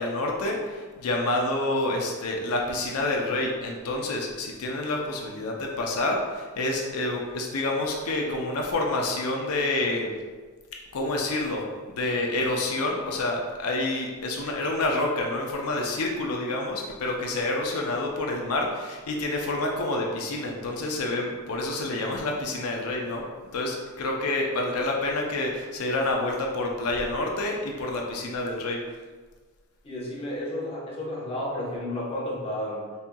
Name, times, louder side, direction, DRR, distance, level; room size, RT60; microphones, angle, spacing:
voice 1, 0.0-10.1 10.9-23.2 23.5-28.8, left 2 dB, 90° left, 0 dB, 0.5 m, -28 dB
voice 2, 29.8-32.9, left 1 dB, 25° left, -5 dB, 0.9 m, -32 dB
4.2 x 3.5 x 2.2 m, 1.4 s
head